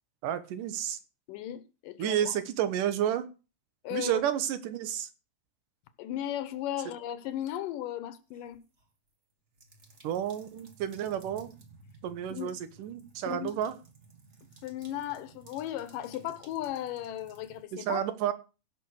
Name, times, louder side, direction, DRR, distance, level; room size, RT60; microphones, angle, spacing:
voice 1, 0.2-1.0 2.0-3.3 3.9-5.1 10.0-11.5 12.0-13.7 17.7-18.3, right 10 dB, 80° right, 2.7 m, -31 dB
voice 2, 1.3-2.3 3.8-4.2 6.0-8.6 12.3-12.6 13.3-13.6 14.6-18.1, left 12 dB, 85° left, 2.7 m, -36 dB
sound 1, 8.3-8.9 9.5-17.6, right 3 dB, 35° right, 1.1 m, -56 dB
16.5 x 5.9 x 6.3 m
omnidirectional pair, 3.7 m